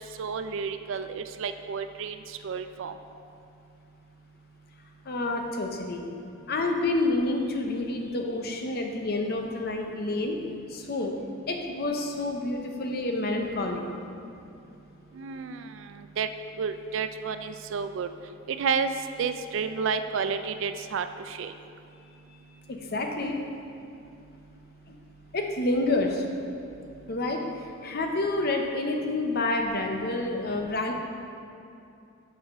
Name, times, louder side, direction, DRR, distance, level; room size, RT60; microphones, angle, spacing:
voice 1, 0.0-2.9 15.1-16.3 16.6-18.1 18.5-18.9 19.2-21.5, right 6 dB, 60° right, 9 dB, 0.3 m, -31 dB
voice 2, 5.1-6.0 6.5-10.4 10.7-11.1 11.5-13.8 22.7-23.4 25.3-26.3 27.1-27.4 27.8-30.9, left 2 dB, 45° left, 3 dB, 0.7 m, -28 dB
6.8 x 4.8 x 5.4 m, 2.7 s
head